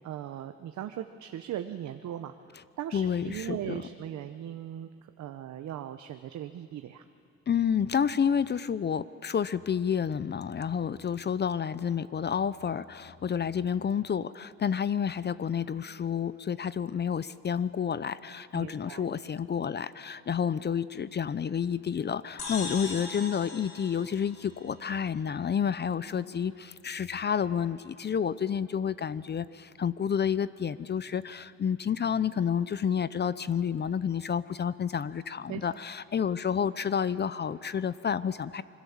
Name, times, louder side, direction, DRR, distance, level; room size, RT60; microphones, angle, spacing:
voice 1, 0.0-2.3 2.8-4.9 5.2-7.0 18.5-19.1 35.5-35.6, right 11 dB, 70° right, 8 dB, 0.9 m, -38 dB
voice 2, 2.9-3.8 7.5-38.6, left 7 dB, 35° left, 16 dB, 0.6 m, -30 dB
sound 1, 22.4-25.0, left 3 dB, 55° left, 4.3 m, -40 dB
26.0 x 21.5 x 7.3 m, 2.6 s
cardioid pair, 90°, 30 cm